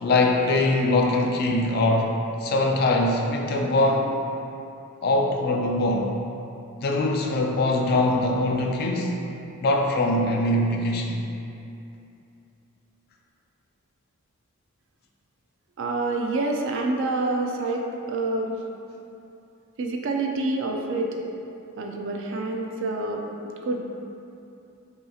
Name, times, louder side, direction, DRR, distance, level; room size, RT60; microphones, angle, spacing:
voice 1, 0.0-4.1 5.0-6.1 6.8-9.1 9.6-11.2, left 2 dB, 45° left, 1 dB, 0.3 m, -22 dB
voice 2, 15.8-18.6 19.8-21.2 21.8-23.2 23.6-23.8, right 2 dB, 55° right, 2 dB, 0.4 m, -27 dB
5.6 x 2.8 x 2.3 m, 2.7 s
head